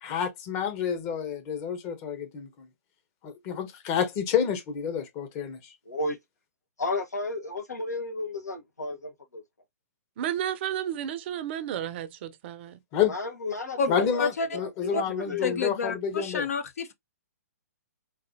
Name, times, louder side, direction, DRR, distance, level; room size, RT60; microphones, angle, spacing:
voice 1, 0.0-2.7 3.2-5.7 12.9-13.1 13.9-16.5, left 8 dB, 30° left, 1.0 m, -29 dB
voice 2, 5.9-6.2 6.8-9.4 13.1-15.6, left 2 dB, 80° left, 1.2 m, -33 dB
voice 3, 10.2-12.8, right 10 dB, 40° right, 0.6 m, -32 dB
voice 4, 13.8-14.5 14.9-15.0 15.4-16.9, left 4 dB, 65° left, 0.8 m, -29 dB
3.9 x 2.6 x 2.7 m
figure-of-eight pair, 125°, 9 cm